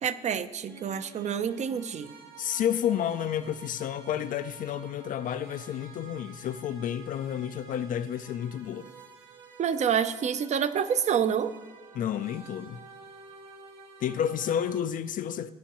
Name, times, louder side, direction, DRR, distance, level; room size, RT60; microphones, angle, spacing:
voice 1, 0.0-2.1 9.6-11.5, right 8 dB, 45° right, 0.6 m, -28 dB
sound 1, 0.6-14.8, right 5 dB, 75° right, 2.0 m, -51 dB
voice 2, 2.4-8.9 11.9-12.8 14.0-15.5, left 9 dB, 50° left, 0.4 m, -30 dB
16.0 x 10.0 x 3.0 m
cardioid pair, 110°, 17 cm